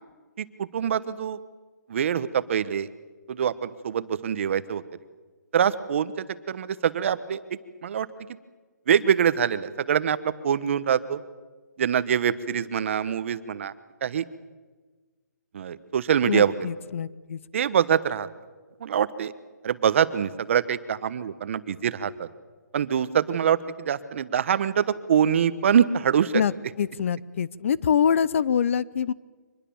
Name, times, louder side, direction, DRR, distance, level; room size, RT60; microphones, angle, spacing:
voice 1, 0.4-1.4 1.9-2.9 3.3-4.8 5.5-7.4 7.8-8.1 8.9-11.2 11.8-13.7 14.0-14.2 15.5-16.5 17.5-18.3 18.8-19.3 19.6-22.3 22.7-26.3, right 8 dB, 45° right, 15 dB, 1.1 m, -24 dB
voice 2, 16.3-17.4 26.3-26.5 26.8-29.1, left 8 dB, 45° left, 20 dB, 0.7 m, -24 dB
25.0 x 21.0 x 7.1 m, 1.4 s
hypercardioid pair, 160°, 10 cm